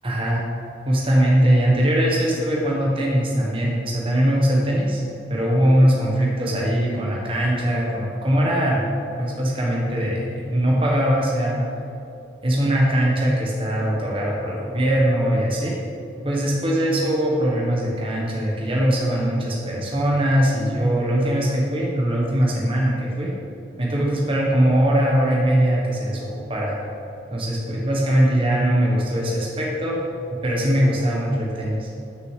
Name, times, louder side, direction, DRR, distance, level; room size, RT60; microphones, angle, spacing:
voice 1, 0.0-0.4 0.9-5.0 5.3-8.8 9.2-11.6 12.4-15.7 16.2-23.3 23.8-26.7 27.3-30.1 30.4-31.9, equal, 30° right, -3 dB, 1.2 m, -21 dB
6.5 x 6.2 x 7.4 m, 2.7 s
head